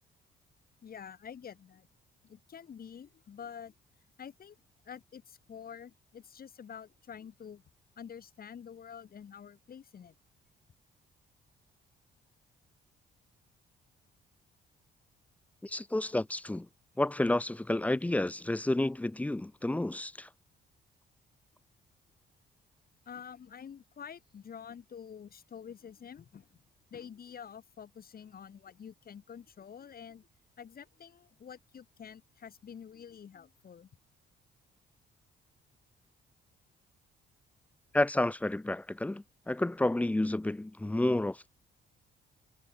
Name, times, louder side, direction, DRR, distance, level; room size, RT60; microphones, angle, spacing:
voice 1, 0.8-1.9 2.2-3.7 4.2-4.6 4.9-7.6 8.0-10.2 23.1-26.6 26.9-30.3 30.6-33.9, left 7 dB, 50° left, 2.2 m, -48 dB
voice 2, 15.6-16.7 17.0-20.3 37.9-41.5, left 1 dB, 5° left, 0.4 m, -30 dB
cardioid pair, 90°, 20 cm